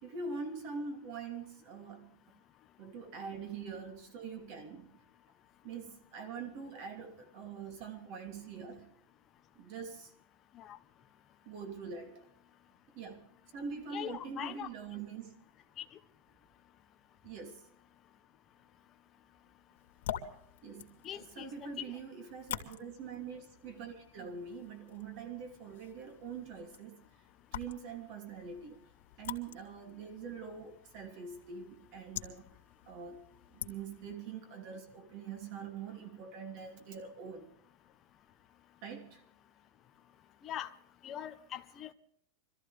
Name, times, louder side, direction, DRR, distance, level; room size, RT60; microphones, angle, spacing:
voice 1, 0.0-2.2 2.8-5.0 5.6-8.9 9.5-10.1 11.4-12.3 12.9-15.4 17.2-17.6 20.6-27.0 27.5-28.8 29.2-32.5 32.9-33.2 33.5-37.5 38.8-39.2, right 5 dB, 40° right, 2.9 m, -44 dB
voice 2, 13.9-14.7 21.0-21.8 40.4-40.7 41.0-41.9, left 10 dB, 20° left, 1.0 m, -42 dB
sound 1, 19.8-34.2, left 11 dB, 85° left, 2.4 m, -47 dB
25.0 x 14.5 x 3.4 m
supercardioid pair, 175°, 0 cm